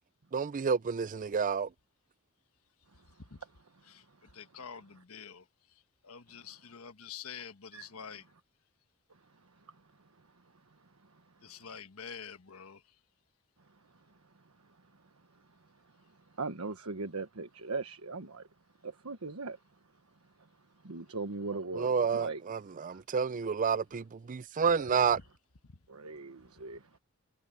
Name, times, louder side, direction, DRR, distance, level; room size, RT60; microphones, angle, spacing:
voice 1, 0.3-1.7 21.7-25.2, right 6 dB, 35° right, 0.4 m, -30 dB
voice 2, 4.3-8.2 11.4-12.8 25.7-25.8, left 7 dB, 80° left, 1.3 m, -47 dB
voice 3, 16.4-18.5 18.8-19.6 20.8-22.4 22.9-23.0 24.7-24.9 25.9-26.8, right 3 dB, 80° right, 1.3 m, -39 dB
head